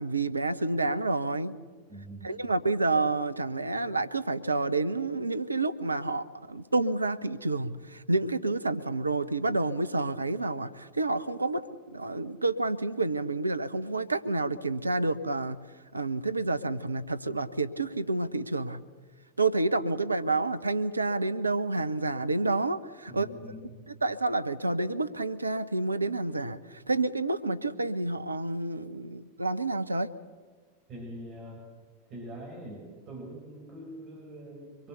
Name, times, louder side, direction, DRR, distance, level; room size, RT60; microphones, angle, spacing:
voice 1, 0.0-1.6 2.2-15.6 15.9-18.8 19.4-23.3 24.0-30.1, right 2 dB, 80° right, 12 dB, 0.9 m, -29 dB
voice 2, 1.9-2.4 23.1-23.8 30.9-31.6 32.1-34.9, equal, 35° right, -2 dB, 6.8 m, -43 dB
25.0 x 23.0 x 6.8 m, 1.4 s
figure-of-eight pair, 90°, 0 cm